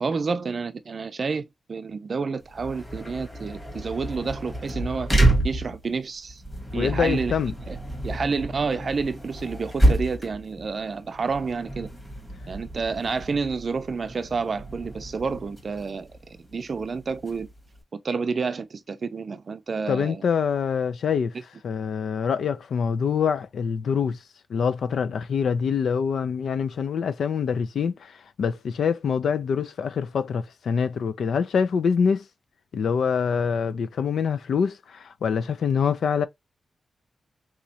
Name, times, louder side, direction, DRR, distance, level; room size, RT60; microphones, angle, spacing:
voice 1, 0.0-6.4 6.7-7.3 7.7-7.8 8.0-11.9 12.5-17.5 18.0-20.2, right 4 dB, 40° right, 0.5 m, -29 dB
sound 1, 2.4-17.8, right 1 dB, 15° left, 1.5 m, -29 dB
voice 2, 6.7-7.5 19.9-21.3 21.6-24.2 24.5-28.1 28.4-32.2 32.7-36.3, left 6 dB, 80° left, 0.4 m, -25 dB
3.6 x 3.1 x 2.7 m
wide cardioid pair, 165°, 0 cm